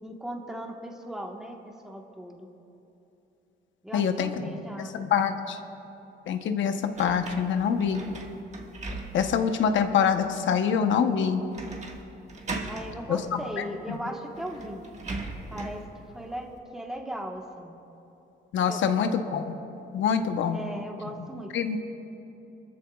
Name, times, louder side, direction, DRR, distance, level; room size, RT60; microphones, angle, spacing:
voice 1, 0.0-2.5 3.8-4.9 12.6-14.9 15.5-17.8 18.7-18.8 20.5-21.5, right 1 dB, 5° right, 1 dB, 1.3 m, -38 dB
voice 2, 3.9-4.3 4.8-5.6 6.3-8.0 9.1-11.4 13.1-14.0 18.5-19.5 19.9-20.6 21.5-21.8, left 7 dB, 70° left, 7 dB, 1.0 m, -25 dB
sound 1, 6.9-9.5 10.0-10.1 11.5-12.0 12.3-12.9 13.9-14.0 14.3-15.8, right 3 dB, 35° right, 1.6 m, -38 dB
22.0 x 14.0 x 2.4 m, 2.9 s
cardioid pair, 90°, 20 cm